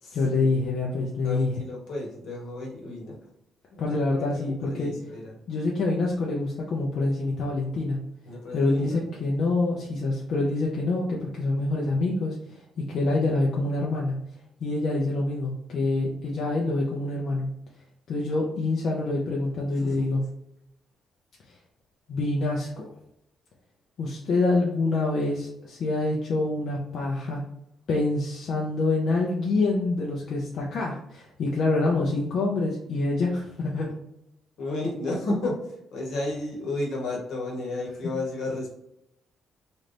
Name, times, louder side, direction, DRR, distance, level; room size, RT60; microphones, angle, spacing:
voice 1, 0.1-1.6 3.8-4.9 5.5-8.0 8.5-12.6 12.9-14.2 14.6-17.5 18.1-20.2 22.1-22.8 24.0-27.4 27.9-33.9, left 2 dB, 60° left, -3 dB, 0.7 m, -26 dB
voice 2, 1.2-3.2 3.7-4.0 4.3-5.3 8.3-9.0 19.8-20.0 34.6-38.7, left 2 dB, 75° left, -2 dB, 1.3 m, -32 dB
3.1 x 2.6 x 3.3 m, 0.81 s
cardioid pair, 90°, 0 cm